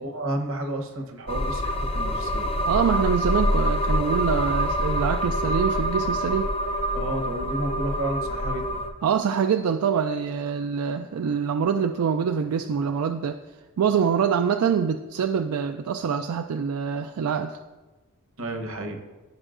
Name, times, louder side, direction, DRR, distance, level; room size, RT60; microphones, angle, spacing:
voice 1, 0.0-2.5 6.9-8.8 18.4-19.0, right 1 dB, 65° right, 4 dB, 1.0 m, -31 dB
sound 1, 1.3-8.9, equal, 25° left, 0.5 m, -26 dB
voice 2, 2.7-6.5 9.0-13.4 13.8-17.6, right 7 dB, 85° right, 7 dB, 0.4 m, -25 dB
14.5 x 5.4 x 2.5 m, 1.2 s
head